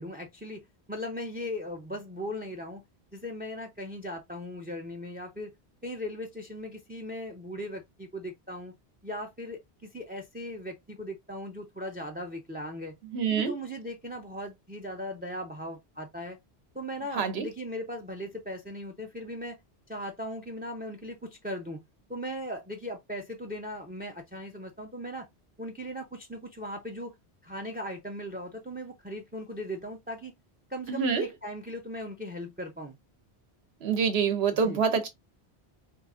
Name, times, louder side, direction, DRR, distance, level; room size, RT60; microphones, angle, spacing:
voice 1, 0.0-2.8 3.1-5.5 5.8-8.7 9.0-13.0 13.3-16.4 16.7-19.6 19.9-21.8 22.1-25.3 25.6-27.1 27.4-30.3 30.7-33.0 34.6-34.8, equal, 10° right, 0.4 m, -38 dB
voice 2, 13.1-13.5 17.1-17.5 30.9-31.3 33.8-35.1, right 6 dB, 75° right, 1.0 m, -26 dB
4.6 x 2.5 x 2.4 m
omnidirectional pair, 1.1 m